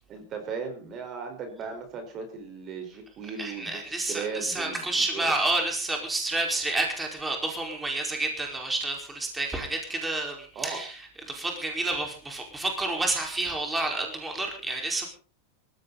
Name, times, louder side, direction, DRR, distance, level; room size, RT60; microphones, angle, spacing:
voice 1, 0.1-5.3 10.5-10.8, right 5 dB, 35° right, 5 dB, 4.8 m, -37 dB
voice 2, 3.4-10.9 11.3-15.1, right 2 dB, 10° right, 2 dB, 4.8 m, -29 dB
19.0 x 15.0 x 4.2 m, 0.38 s
supercardioid pair, 130°, 0 cm